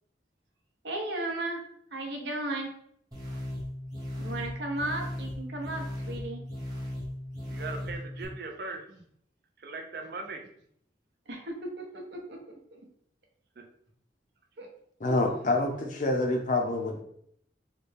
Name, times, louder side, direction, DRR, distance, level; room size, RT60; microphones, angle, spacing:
voice 1, 0.8-1.6 1.9-2.7 4.2-6.4 11.3-12.4 12.7-12.8 14.6-14.7 15.1-15.2, right 1 dB, 75° right, 1 dB, 0.8 m, -35 dB
sound 1, 3.1-8.2, left 1 dB, 20° right, 1.0 m, -37 dB
voice 2, 7.5-8.8 9.6-10.4 13.6-13.7, right 3 dB, 55° right, 4 dB, 0.5 m, -39 dB
voice 3, 15.0-17.0, left 2 dB, 45° left, 3 dB, 0.5 m, -27 dB
4.1 x 2.2 x 3.3 m, 0.69 s
head